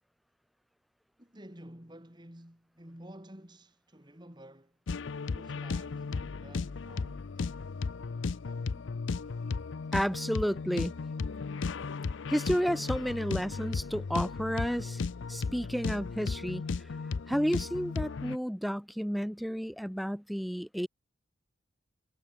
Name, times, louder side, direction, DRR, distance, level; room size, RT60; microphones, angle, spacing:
voice 1, 1.2-4.8 5.2-7.7 8.4-9.0, right 1 dB, 20° right, 2.7 m, -52 dB
sound 1, 4.9-18.4, left 4 dB, 70° left, 0.5 m, -35 dB
voice 2, 9.9-10.9 12.3-15.0 15.3-16.6 17.3-20.9, equal, ahead, 0.5 m, -31 dB
head